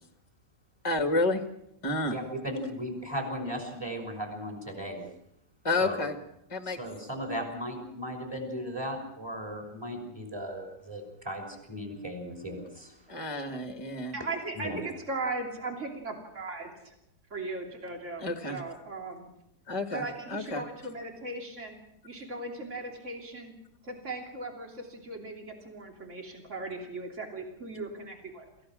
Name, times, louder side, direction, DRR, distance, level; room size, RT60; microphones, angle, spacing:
voice 1, 0.8-1.4 1.8-2.2 5.6-6.2 6.5-6.8 13.1-14.2 18.2-18.6 19.7-20.6, left 2 dB, 20° left, 5 dB, 1.7 m, -30 dB
voice 2, 2.0-5.0 5.8-6.1 6.7-12.9 14.5-14.8, equal, 15° right, 3 dB, 5.9 m, -36 dB
voice 3, 14.1-16.9 17.3-19.3 19.9-21.8 22.0-23.5 23.8-28.5, right 2 dB, 45° right, 1 dB, 3.4 m, -38 dB
27.5 x 15.5 x 6.3 m, 0.78 s
omnidirectional pair, 1.7 m